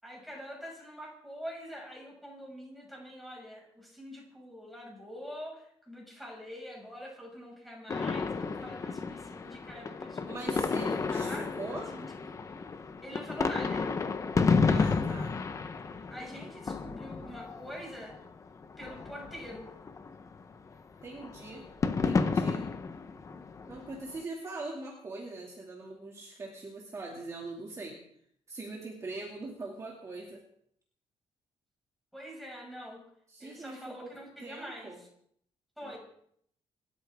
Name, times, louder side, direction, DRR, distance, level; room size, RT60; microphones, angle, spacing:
voice 1, 0.0-10.7 11.0-12.1 13.0-13.9 16.1-18.2 18.8-19.7 32.1-33.0 33.4-35.1 35.8-36.0, equal, ahead, -3 dB, 6.3 m, -45 dB
sound 1, 7.9-18.3 18.6-20.7 21.0-24.2, left 4 dB, 30° left, 1.0 m, -32 dB
voice 2, 10.3-11.9 14.7-15.4 21.0-22.7 23.7-28.0 28.5-30.4 33.3-34.1 34.4-35.0 35.8-36.0, right 2 dB, 25° right, -2 dB, 2.5 m, -42 dB
28.0 x 13.0 x 3.7 m, 0.67 s
cardioid pair, 175°, 11 cm